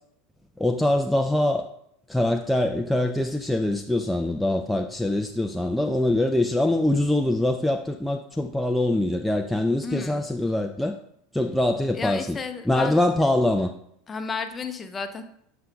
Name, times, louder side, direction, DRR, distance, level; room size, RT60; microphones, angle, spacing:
voice 1, 0.6-1.7 2.1-11.0 11.3-12.4 12.7-13.7, left 1 dB, 5° left, 4 dB, 0.4 m, -23 dB
voice 2, 9.8-10.2 11.9-13.0 14.1-15.2, left 5 dB, 25° left, 7 dB, 0.8 m, -32 dB
7.5 x 6.8 x 2.3 m, 0.71 s
hypercardioid pair, 95°, 0 cm